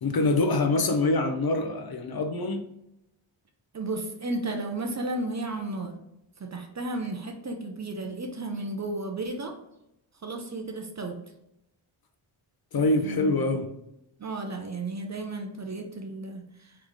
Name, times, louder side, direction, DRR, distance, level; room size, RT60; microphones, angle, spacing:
voice 1, 0.0-2.6 12.7-13.7, left 2 dB, 50° left, 6 dB, 0.6 m, -25 dB
voice 2, 3.7-6.0 6.4-9.6 10.2-11.2 12.8-13.4 14.2-16.7, right 2 dB, 35° right, 4 dB, 0.5 m, -33 dB
4.0 x 3.2 x 3.4 m, 0.84 s
wide cardioid pair, 180°, 49 cm